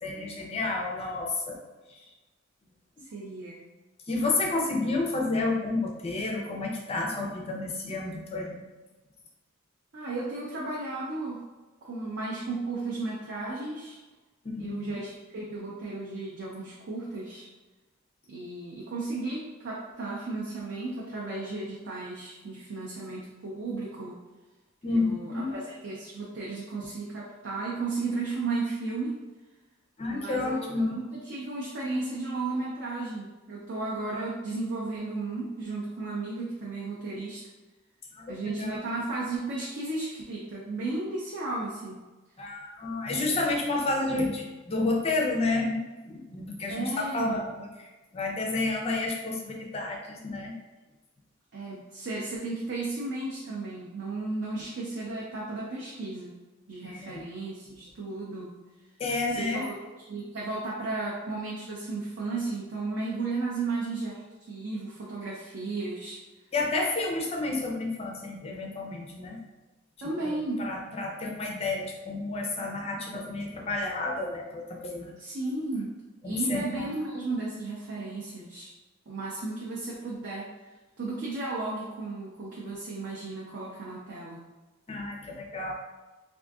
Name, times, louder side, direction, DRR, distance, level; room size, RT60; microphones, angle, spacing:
voice 1, 0.0-1.6 1.9-2.0 4.1-8.6 14.4-15.0 24.8-25.6 30.0-31.0 38.1-38.3 38.6-38.8 42.4-50.6 56.8-57.3 59.0-59.7 66.5-69.4 70.2-75.2 76.2-76.9 84.9-85.7, left 2 dB, 30° left, 0 dB, 0.4 m, -30 dB
voice 2, 3.1-3.6 9.9-11.5 11.8-14.0 14.6-17.5 18.3-24.2 24.9-29.2 30.1-37.4 38.3-42.0 46.7-47.4 51.5-56.4 56.7-58.6 59.3-64.2 64.5-66.2 70.0-70.7 75.2-76.0 76.2-78.7 79.1-80.5 81.0-84.5, right 3 dB, 55° right, -5 dB, 0.5 m, -34 dB
3.6 x 2.5 x 2.3 m, 1.2 s
head